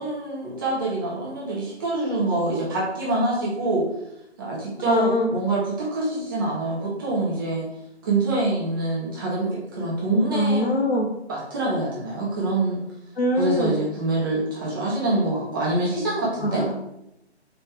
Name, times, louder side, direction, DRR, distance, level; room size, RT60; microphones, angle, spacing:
voice 1, 0.0-3.8 4.4-7.7 8.0-10.7 11.3-12.8 13.3-16.6, right 2 dB, 20° right, -6 dB, 1.1 m, -25 dB
voice 2, 4.9-5.3 10.3-11.1 13.2-13.7 16.4-16.9, left 1 dB, 60° left, 2 dB, 1.0 m, -23 dB
4.6 x 3.2 x 3.5 m, 0.83 s
figure-of-eight pair, 145°, 34 cm